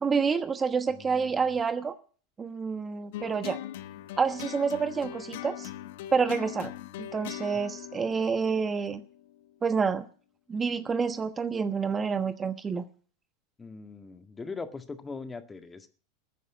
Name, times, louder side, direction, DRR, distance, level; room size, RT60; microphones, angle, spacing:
voice 1, 0.0-2.0 2.4-3.6 4.2-5.7 6.1-6.7 7.0-9.0 9.6-10.1 10.5-12.8, right 5 dB, 20° right, 11 dB, 1.1 m, -28 dB
voice 2, 0.9-1.6 13.6-15.9, left 4 dB, 15° left, 8 dB, 1.8 m, -41 dB
sound 1, 3.1-9.6, left 13 dB, 70° left, 1.0 m, -41 dB
14.5 x 9.4 x 9.5 m, 0.42 s
hypercardioid pair, 95°, 0 cm